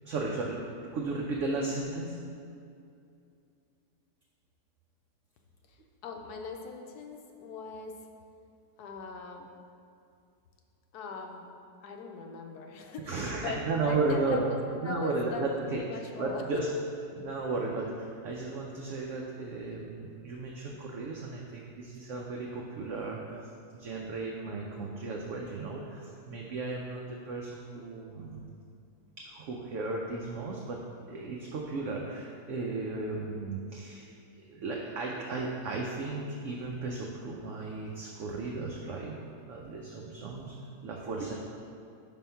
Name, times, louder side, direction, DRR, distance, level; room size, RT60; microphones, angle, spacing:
voice 1, 0.0-2.2 13.1-14.4 14.8-15.8 16.2-16.7 17.1-28.4 29.2-30.8 31.1-34.1 34.4-39.2 39.5-40.6 40.8-41.3, right 3 dB, 70° right, -1 dB, 0.7 m, -35 dB
voice 2, 5.7-8.0 8.8-9.5 10.9-11.5 11.8-16.4, left 4 dB, 75° left, 3 dB, 1.1 m, -40 dB
5.1 x 3.7 x 5.5 m, 2.5 s
omnidirectional pair, 1.7 m